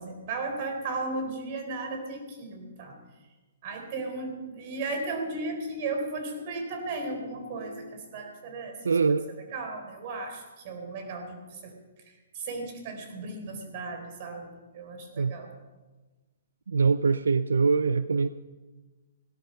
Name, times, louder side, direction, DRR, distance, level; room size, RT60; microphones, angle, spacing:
voice 1, 0.0-3.0 3.6-8.8 9.5-11.7 12.1-15.5, right 3 dB, 40° right, 5 dB, 4.0 m, -35 dB
voice 2, 8.8-9.3 15.2-15.4 16.7-18.3, right 4 dB, 90° right, 14 dB, 0.5 m, -23 dB
18.0 x 12.0 x 5.7 m, 1.2 s
hypercardioid pair, 145°, 0 cm